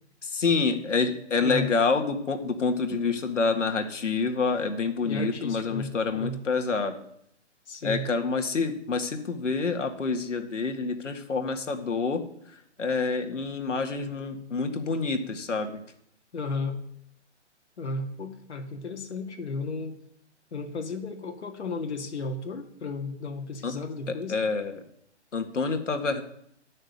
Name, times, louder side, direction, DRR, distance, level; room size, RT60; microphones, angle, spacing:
voice 1, 0.2-7.0 7.8-12.2 12.5-15.8 23.6-23.7 24.3-24.8 25.3-26.2, left 4 dB, 85° left, 5 dB, 1.9 m, -27 dB
voice 2, 1.4-1.7 5.0-6.4 7.7-8.1 16.3-16.8 17.8-20.0 20.5-24.4, left 3 dB, 65° left, 4 dB, 1.9 m, -34 dB
10.0 x 6.5 x 7.9 m, 0.70 s
hypercardioid pair, 160°, 36 cm